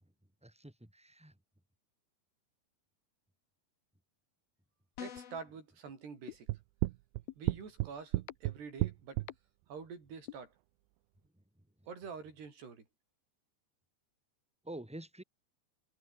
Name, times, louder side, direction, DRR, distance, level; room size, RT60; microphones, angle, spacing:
voice 1, 0.4-1.3 14.6-15.2, right 1 dB, ahead, 4.4 m, -47 dB
sound 1, 5.0-5.5, left 8 dB, 55° left, 4.3 m, -45 dB
voice 2, 5.0-6.5 7.4-9.3 9.7-10.5 11.8-12.9, right 5 dB, 60° right, 7.2 m, -47 dB
sound 2, 6.3-6.4 7.3-7.4 8.3-8.4 9.3-9.4 10.3-10.4, left 18 dB, 90° left, 2.2 m, -44 dB
sound 3, 6.5-9.3, right 20 dB, 80° right, 2.8 m, -32 dB
omnidirectional pair, 5.3 m